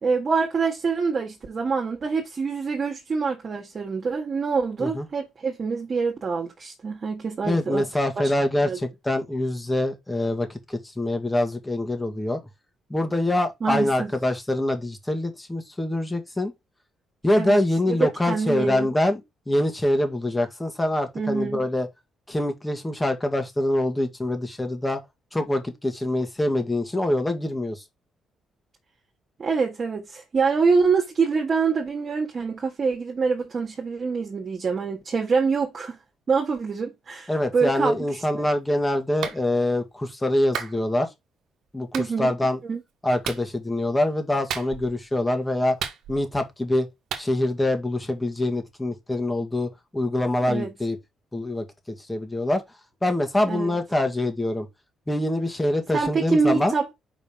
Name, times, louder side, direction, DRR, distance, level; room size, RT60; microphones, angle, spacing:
voice 1, 0.0-7.9 8.6-8.8 13.6-14.1 17.3-17.6 17.9-18.9 21.1-21.6 29.4-36.0 36.3-38.5 41.9-42.3 42.6-42.8 50.4-50.7 53.5-53.7 55.9-56.9, right 5 dB, 45° right, 1.7 m, -25 dB
voice 2, 7.4-12.4 12.9-16.5 17.2-19.2 19.5-21.9 22.3-25.0 25.3-27.8 37.3-41.1 41.7-41.9 42.2-42.6 43.0-45.8 46.1-46.9 47.1-51.0 51.3-51.6 52.0-52.6 53.0-54.7 55.1-56.8, left 1 dB, 15° left, 1.8 m, -24 dB
Clapping, 39.2-39.4 40.5-40.8 41.9-42.1 43.2-43.5 44.5-45.0 45.8-46.4 47.1-47.3, right 8 dB, 80° right, 1.1 m, -32 dB
5.3 x 4.0 x 5.3 m
cardioid pair, 90°, 0 cm